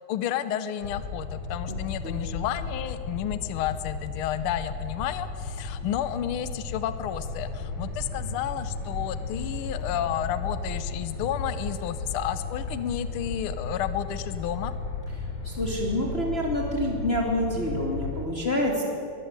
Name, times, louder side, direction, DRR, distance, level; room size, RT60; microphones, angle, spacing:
voice 1, 0.0-14.7, left 11 dB, 80° left, 12 dB, 1.2 m, -31 dB
sound 1, 0.8-18.2, left 3 dB, 60° left, 3.4 m, -34 dB
voice 2, 15.4-18.8, left 1 dB, 20° left, 0 dB, 2.7 m, -27 dB
22.5 x 14.5 x 9.7 m, 2.5 s
omnidirectional pair, 3.5 m